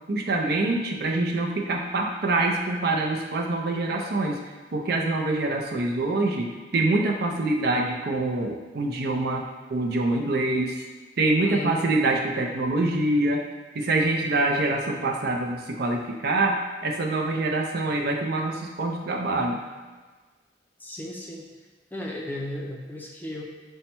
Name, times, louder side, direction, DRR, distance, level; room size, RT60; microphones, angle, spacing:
voice 1, 0.1-4.4 4.7-10.8 11.2-13.4 13.7-19.6, right 2 dB, 60° right, 1 dB, 0.5 m, -25 dB
voice 2, 11.4-11.8 20.8-21.5 21.9-23.4, left 1 dB, 10° left, -1 dB, 0.5 m, -34 dB
5.4 x 2.2 x 4.3 m, 1.3 s
head